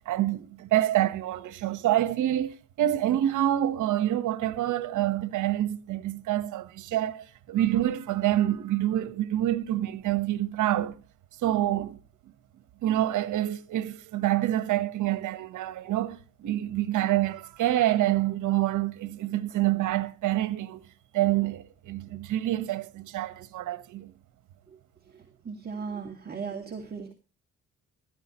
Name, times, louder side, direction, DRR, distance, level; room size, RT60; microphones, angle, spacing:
voice 1, 0.0-11.0 11.4-12.0 12.8-20.8 21.1-24.1, right 13 dB, 80° right, 1.4 m, -27 dB
voice 2, 25.1-27.1, right 5 dB, 30° right, 2.3 m, -38 dB
16.0 x 13.0 x 3.1 m
cardioid pair, 90°, 30 cm